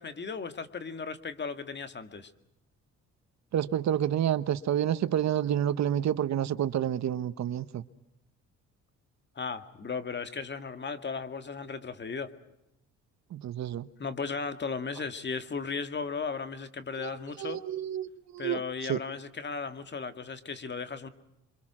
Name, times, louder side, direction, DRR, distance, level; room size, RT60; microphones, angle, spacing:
voice 1, 0.0-2.3 9.4-12.3 14.0-17.6 18.4-21.1, left 5 dB, 35° left, 2.1 m, -36 dB
voice 2, 3.5-7.8 13.3-13.9 17.0-18.6 18.9-19.0, right 10 dB, 65° right, 1.1 m, -29 dB
28.0 x 24.5 x 6.2 m
cardioid pair, 90°, 30 cm